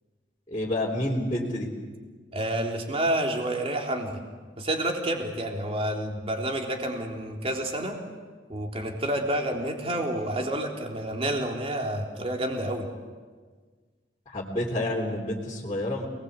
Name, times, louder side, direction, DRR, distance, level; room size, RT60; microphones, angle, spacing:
voice 1, 0.5-1.7 14.3-16.1, left 1 dB, 25° left, -6 dB, 3.6 m, -29 dB
voice 2, 2.3-4.2 4.6-8.0 8.5-12.9, right 1 dB, 35° right, 1 dB, 3.7 m, -29 dB
28.0 x 21.0 x 8.3 m, 1.5 s
head